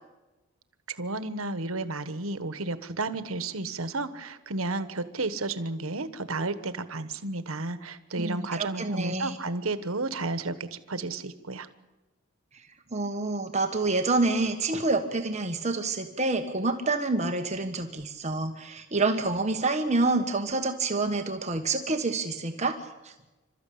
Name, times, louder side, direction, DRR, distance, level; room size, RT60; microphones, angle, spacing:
voice 1, 0.9-11.7, right 3 dB, 85° right, 12 dB, 1.3 m, -32 dB
voice 2, 8.2-9.4 12.9-22.8 23.0-23.1, right 3 dB, 35° right, 5 dB, 1.4 m, -27 dB
28.5 x 13.0 x 8.6 m, 1.1 s
head